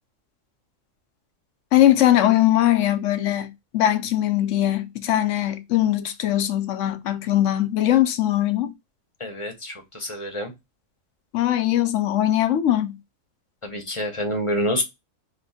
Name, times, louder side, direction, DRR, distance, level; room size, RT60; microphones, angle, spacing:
voice 1, 1.7-8.7 11.3-13.0, left 12 dB, 75° left, 0.9 m, -21 dB
voice 2, 9.2-10.5 13.6-14.8, equal, 25° left, 0.9 m, -27 dB
3.0 x 2.9 x 4.1 m
omnidirectional pair, 1.4 m